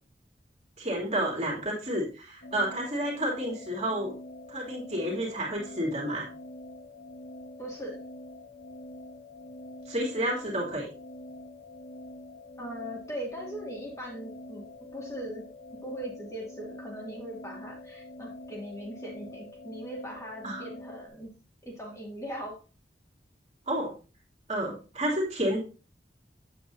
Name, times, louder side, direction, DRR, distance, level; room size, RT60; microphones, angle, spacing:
voice 1, 0.8-4.1 4.5-6.3 9.9-10.9 20.4-20.7 23.7-23.9 24.5-25.6, right 1 dB, 35° right, -2 dB, 2.9 m, -30 dB
sound 1, 2.4-21.1, left 1 dB, 85° left, 1.6 m, -45 dB
voice 2, 7.6-8.0 12.6-14.7 14.9-15.4 15.8-21.3 21.6-22.6, equal, 20° left, -2 dB, 2.4 m, -39 dB
9.2 x 8.0 x 2.8 m, 0.32 s
head